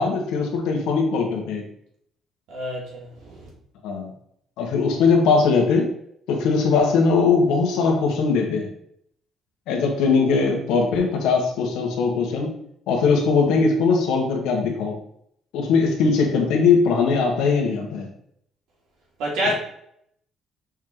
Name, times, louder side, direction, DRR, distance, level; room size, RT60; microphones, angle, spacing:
voice 1, 0.0-1.6 3.8-4.1 4.6-5.9 6.3-8.7 9.7-12.5 12.9-15.0 15.5-18.1 19.4-19.5, left 4 dB, 85° left, 1 dB, 1.7 m, -20 dB
voice 2, 2.5-3.5 19.2-19.5, equal, 70° right, -3 dB, 2.9 m, -27 dB
6.4 x 4.8 x 4.0 m, 0.71 s
cardioid pair, 175°, 0 cm